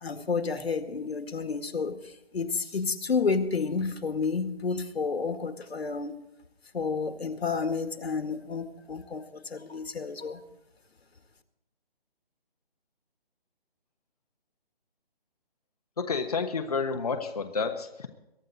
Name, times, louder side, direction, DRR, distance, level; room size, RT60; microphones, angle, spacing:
voice 1, 0.0-6.2 6.7-10.4, left 4 dB, 85° left, 8 dB, 2.0 m, -30 dB
voice 2, 16.0-18.1, left 4 dB, 40° left, 5 dB, 1.2 m, -30 dB
23.0 x 11.0 x 4.0 m, 0.92 s
hypercardioid pair, 175°, 30 cm